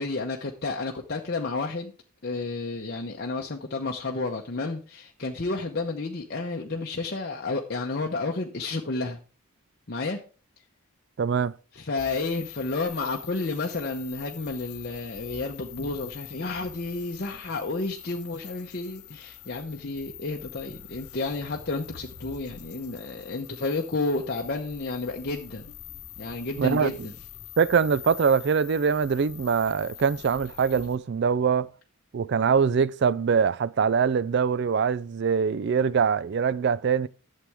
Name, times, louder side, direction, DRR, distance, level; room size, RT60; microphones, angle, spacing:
voice 1, 0.0-1.9 2.2-9.2 9.9-10.2 11.7-25.7 26.2-27.1, left 3 dB, 45° left, 0.8 m, -31 dB
voice 2, 11.2-11.5 26.6-26.9 27.6-31.7 32.1-37.1, right 6 dB, 50° right, 0.3 m, -23 dB
sound 1, 12.0-31.0, left 11 dB, 85° left, 0.8 m, -45 dB
11.5 x 7.6 x 3.5 m
head